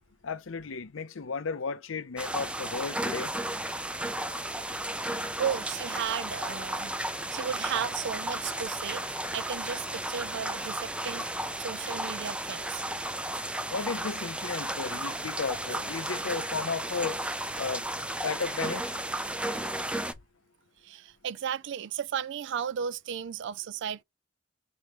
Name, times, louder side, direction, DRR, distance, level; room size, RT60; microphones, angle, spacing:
voice 1, 0.2-3.3 13.7-17.2 17.6-17.9 18.2-18.8, left 5 dB, 85° left, 0.6 m, -34 dB
sound 1, 2.2-20.1, right 1 dB, 5° right, 0.5 m, -34 dB
voice 2, 5.1-11.3 11.6-12.8 20.8-24.0, right 8 dB, 65° right, 0.4 m, -35 dB
4.6 x 3.1 x 3.0 m
head